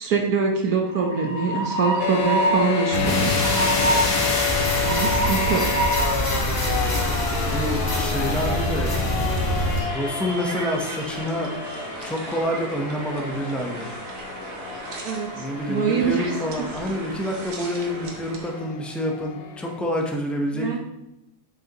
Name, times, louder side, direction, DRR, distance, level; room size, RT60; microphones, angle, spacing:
voice 1, 0.0-3.3 4.8-5.6 15.0-16.3 20.5-20.8, right 5 dB, 70° right, 1 dB, 1.3 m, -24 dB
Train, 0.8-18.6, right 2 dB, 90° right, 1.7 m, -31 dB
sound 1, 2.0-19.8, left 9 dB, 70° left, 0.5 m, -31 dB
sound 2, 2.9-9.8, left 1 dB, 50° left, 2.2 m, -24 dB
voice 2, 7.2-8.9 9.9-13.9 15.3-20.8, equal, ahead, 0 dB, 0.3 m, -28 dB
8.1 x 6.2 x 2.9 m, 0.91 s
omnidirectional pair, 1.7 m